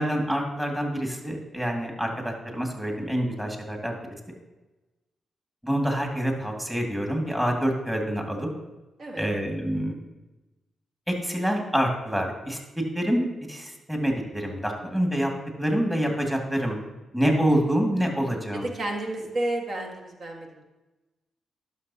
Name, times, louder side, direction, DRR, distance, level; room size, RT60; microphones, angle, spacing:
voice 1, 0.0-4.0 5.6-8.5 9.2-10.0 11.1-12.6 12.9-15.3 15.6-16.8 17.1-18.7, equal, 15° right, 1 dB, 2.1 m, -26 dB
voice 2, 9.0-9.3 18.7-20.6, right 1 dB, 60° right, 1 dB, 1.6 m, -31 dB
11.5 x 6.2 x 2.8 m, 1.1 s
supercardioid pair, 50°, 0 cm